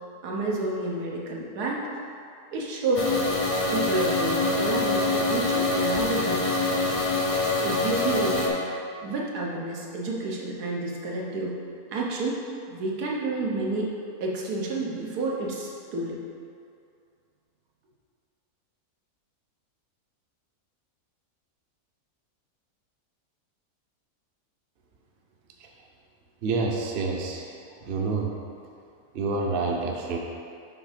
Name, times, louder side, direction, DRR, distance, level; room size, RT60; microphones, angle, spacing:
voice 1, 0.2-1.9 2.5-3.2 3.7-6.9 7.6-8.6 9.0-11.6 11.9-13.9 14.2-16.2, right 2 dB, 85° right, -3 dB, 1.5 m, -30 dB
sound 1, 3.0-8.5, left 2 dB, 40° left, 0.5 m, -25 dB
voice 2, 26.4-27.5 27.8-28.3 29.1-30.2, right 3 dB, 50° right, 0 dB, 0.7 m, -27 dB
6.9 x 3.5 x 5.0 m, 2.5 s
omnidirectional pair, 1.6 m